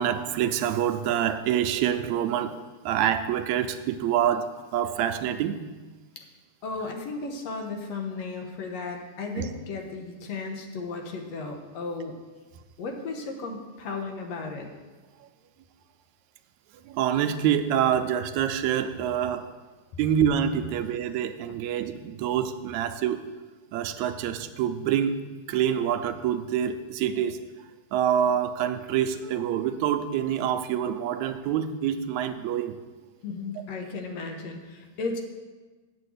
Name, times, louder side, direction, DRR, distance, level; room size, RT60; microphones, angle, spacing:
voice 1, 0.0-4.5 4.7-5.6 9.4-9.5 15.2-15.3 16.9-19.5 20.0-23.2 23.7-25.2 25.5-27.4 27.9-32.8, right 9 dB, 80° right, 8 dB, 1.9 m, -26 dB
voice 2, 6.6-12.1 12.8-14.7 33.2-35.2, left 3 dB, 70° left, 3 dB, 2.1 m, -35 dB
7.7 x 7.6 x 8.1 m, 1.3 s
omnidirectional pair, 3.3 m